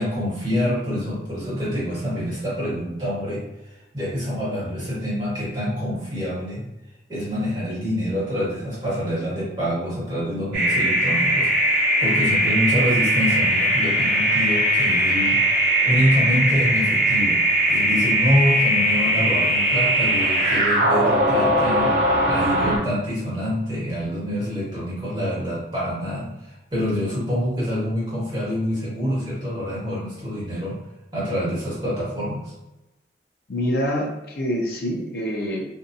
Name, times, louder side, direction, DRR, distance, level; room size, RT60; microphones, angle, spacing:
voice 1, 0.0-3.4 3.9-6.6 7.1-15.4 15.8-17.4 17.7-21.9 22.3-26.3 26.7-30.8 31.1-32.5, equal, 25° right, -9 dB, 1.3 m, -26 dB
sound 1, 10.5-22.8, right 1 dB, 45° right, 0.8 m, -20 dB
voice 2, 33.5-35.6, equal, 60° left, -1 dB, 0.6 m, -26 dB
2.7 x 2.3 x 2.6 m, 0.96 s
head